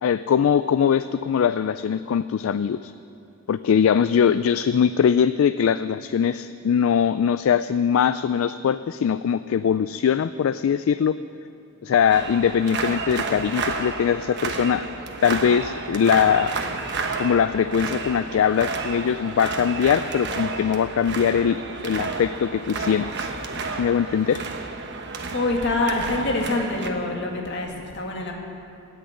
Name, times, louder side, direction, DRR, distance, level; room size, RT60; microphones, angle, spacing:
voice 1, 0.0-2.9 3.5-11.1 11.8-14.9 15.2-16.5 17.2-23.3 23.8-24.4, left 7 dB, 70° left, 13 dB, 0.3 m, -21 dB
sound 1, 12.1-26.9, right 3 dB, 55° right, 1.2 m, -31 dB
voice 2, 25.3-28.3, left 2 dB, 55° left, 0 dB, 2.1 m, -25 dB
16.5 x 6.7 x 9.6 m, 2.9 s
head